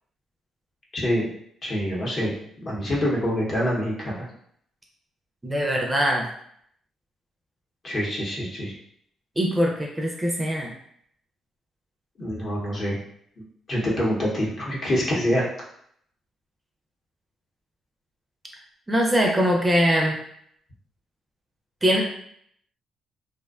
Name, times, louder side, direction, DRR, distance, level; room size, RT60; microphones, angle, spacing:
voice 1, 0.9-1.3 1.6-2.3 2.6-4.3 7.8-8.7 12.2-13.0 13.7-15.5, equal, 45° left, -3 dB, 0.8 m, -25 dB
voice 2, 5.4-6.3 9.4-10.7 18.9-20.2 21.8-22.0, equal, 15° right, 0 dB, 0.4 m, -22 dB
2.5 x 2.1 x 2.4 m, 0.68 s
cardioid pair, 90°, 0 cm